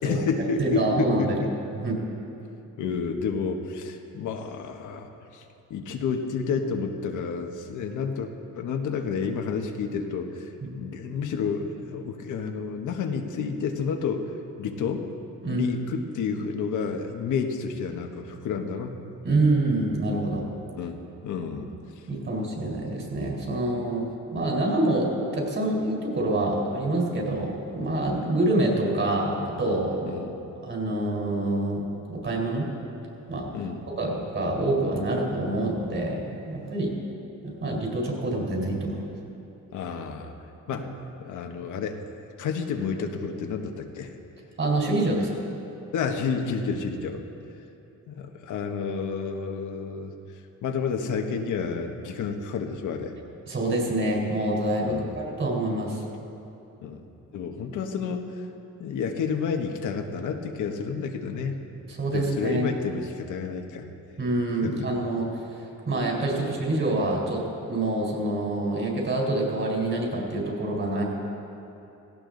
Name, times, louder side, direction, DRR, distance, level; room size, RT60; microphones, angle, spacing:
voice 1, 0.0-1.5 2.8-5.4 5.7-10.5 10.7-14.3 14.6-15.1 15.5-19.1 20.8-21.7 22.0-22.1 30.1-30.3 33.5-33.8 39.7-40.3 40.7-42.0 42.4-44.1 45.9-47.2 48.1-50.1 50.6-53.1 54.8-55.2 56.8-57.0 57.3-58.5 58.8-61.6 62.1-63.9 64.6-64.9, left 5 dB, 80° left, 4 dB, 1.4 m, -30 dB
voice 2, 0.6-1.4 1.7-2.0 10.6-10.7 15.4-15.8 19.2-20.5 22.1-30.2 30.6-31.8 32.1-32.7 33.3-33.5 34.0-36.9 37.4-39.0 40.7-40.8 44.6-45.4 53.5-56.0 61.9-62.8 64.2-65.4 65.9-71.0, right 2 dB, 40° right, -1 dB, 4.4 m, -26 dB
17.0 x 16.5 x 4.0 m, 2.9 s
cardioid pair, 90°, 30 cm